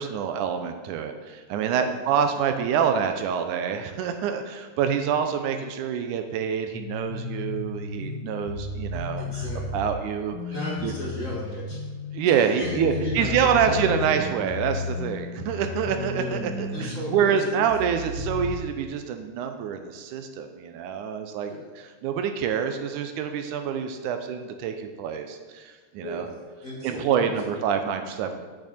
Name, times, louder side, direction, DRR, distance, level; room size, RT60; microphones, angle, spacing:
voice 1, 0.0-9.5 9.7-10.4 10.8-10.9 12.1-26.2 26.8-28.4, right 7 dB, 85° right, 6 dB, 2.2 m, -26 dB
sound 1, 6.7-18.6, left 3 dB, 65° left, 1.7 m, -34 dB
voice 2, 9.2-9.8 10.5-11.9 12.4-14.3 16.2-16.4 16.7-17.7 21.5-21.7 26.0-27.5, equal, 30° left, -5 dB, 2.3 m, -35 dB
9.0 x 8.4 x 4.3 m, 1.5 s
omnidirectional pair, 3.5 m